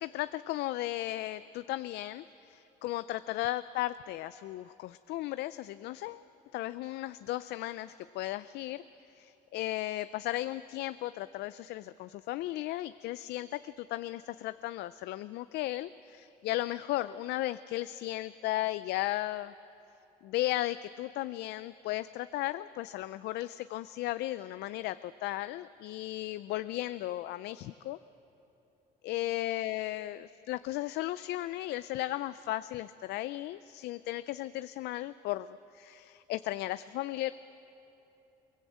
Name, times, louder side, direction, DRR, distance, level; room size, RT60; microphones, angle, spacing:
voice 1, 0.0-6.2 6.5-8.8 9.2-19.5 20.2-28.0 29.0-37.3, left 15 dB, 80° left, 14 dB, 0.4 m, -35 dB
22.5 x 19.5 x 8.0 m, 2.9 s
cardioid pair, 110°, 17 cm